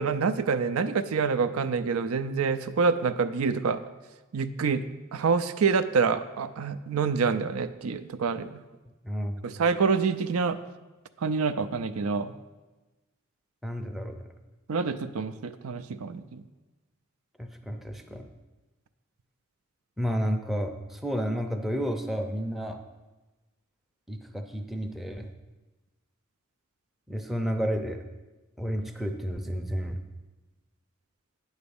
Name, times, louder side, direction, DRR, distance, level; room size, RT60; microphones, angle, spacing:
voice 1, 0.0-3.8 4.3-4.8 5.1-8.6 9.4-10.6 11.2-12.3 14.7-16.4, right 5 dB, 85° right, 11 dB, 0.5 m, -27 dB
voice 2, 9.0-9.4 13.6-14.2 17.4-18.3 20.0-22.8 24.1-25.3 27.1-28.0 28.6-30.0, equal, ahead, 4 dB, 0.5 m, -31 dB
9.5 x 4.0 x 7.0 m, 1.1 s
head